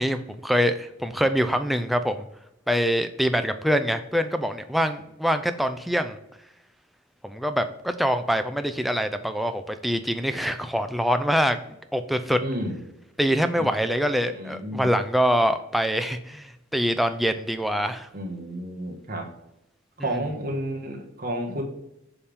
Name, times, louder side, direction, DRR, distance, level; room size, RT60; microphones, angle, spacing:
voice 1, 0.0-2.3 2.7-6.2 7.2-11.6 11.9-12.4 13.2-18.1 20.0-20.2, equal, ahead, 8 dB, 0.4 m, -24 dB
voice 2, 12.4-12.7 13.6-13.7 14.3-14.9 18.1-19.3 20.0-21.6, right 1 dB, 45° right, 1 dB, 1.4 m, -31 dB
7.0 x 3.5 x 5.2 m, 0.84 s
head